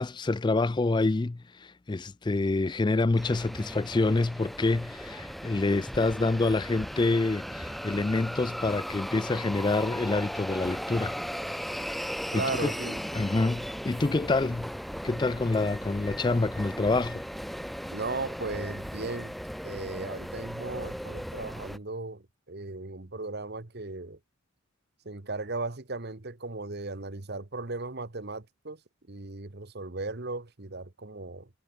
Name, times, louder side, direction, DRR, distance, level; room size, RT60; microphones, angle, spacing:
voice 1, 0.0-11.2 12.3-12.7 13.1-14.7 15.0-17.2, left 2 dB, 20° left, 0.3 m, -27 dB
sound 1, 3.2-21.8, equal, ahead, 1.9 m, -37 dB
voice 2, 12.3-13.0 17.9-19.4 19.6-24.2 25.0-28.8 29.1-31.5, right 3 dB, 45° right, 1.3 m, -36 dB
head